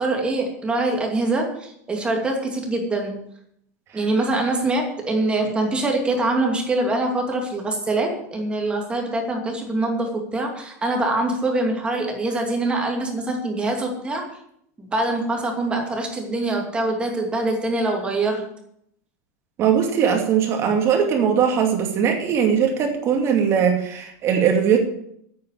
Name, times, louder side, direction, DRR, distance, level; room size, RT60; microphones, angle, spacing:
voice 1, 0.0-3.2 3.9-14.2 14.8-18.5, right 2 dB, 10° right, 1 dB, 2.5 m, -24 dB
voice 2, 19.6-24.8, right 7 dB, 30° right, 3 dB, 2.6 m, -20 dB
10.0 x 8.8 x 8.4 m, 0.72 s
supercardioid pair, 160°, 9 cm